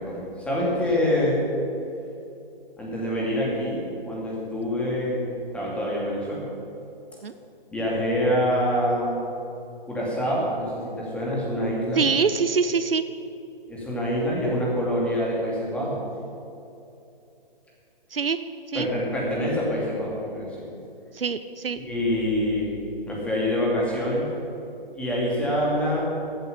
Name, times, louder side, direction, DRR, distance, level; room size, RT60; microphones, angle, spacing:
voice 1, 0.1-1.5 2.8-6.5 7.7-9.4 9.9-12.0 13.7-16.0 18.7-20.5 21.8-22.8 23.1-24.3 24.9-26.0, equal, 5° left, -5 dB, 2.7 m, -26 dB
voice 2, 12.0-13.0 18.1-18.4 18.7-18.9 21.1-21.8, right 5 dB, 75° right, 12 dB, 0.8 m, -24 dB
14.0 x 8.1 x 8.3 m, 2.8 s
figure-of-eight pair, 145°, 29 cm